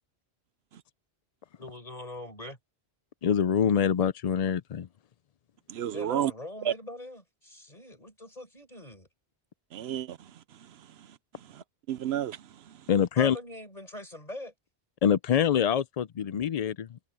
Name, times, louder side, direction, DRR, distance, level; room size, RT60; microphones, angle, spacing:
voice 1, 1.6-2.6 5.9-9.1 13.2-14.5, left 1 dB, 35° left, 6.1 m, -42 dB
voice 2, 3.2-4.9 12.9-13.4 15.0-17.0, left 8 dB, 55° left, 0.4 m, -25 dB
voice 3, 5.7-6.3 6.6-6.7 9.7-12.9, right 10 dB, 75° right, 0.9 m, -33 dB
omnidirectional pair, 1.1 m